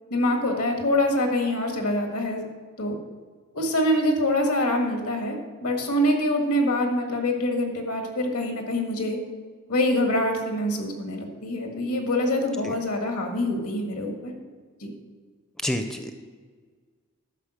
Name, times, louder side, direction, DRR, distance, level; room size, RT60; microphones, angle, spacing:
voice 1, 0.1-2.4 2.8-3.0 3.5-9.2 9.7-14.3 14.8-14.9, left 1 dB, 75° left, 3 dB, 1.7 m, -25 dB
voice 2, 15.6-16.2, left 1 dB, ahead, 6 dB, 0.4 m, -29 dB
11.5 x 4.9 x 6.4 m, 1.5 s
head